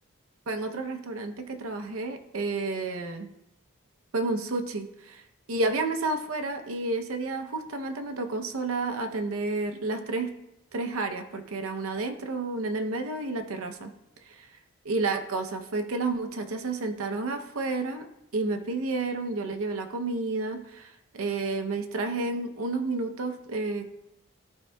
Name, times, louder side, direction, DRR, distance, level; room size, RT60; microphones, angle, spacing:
voice 1, 0.5-3.3 4.1-5.2 5.5-10.3 10.7-13.9 14.2-14.5 14.9-23.9, right 3 dB, 80° right, 6 dB, 0.6 m, -31 dB
12.5 x 4.5 x 2.2 m, 0.86 s
head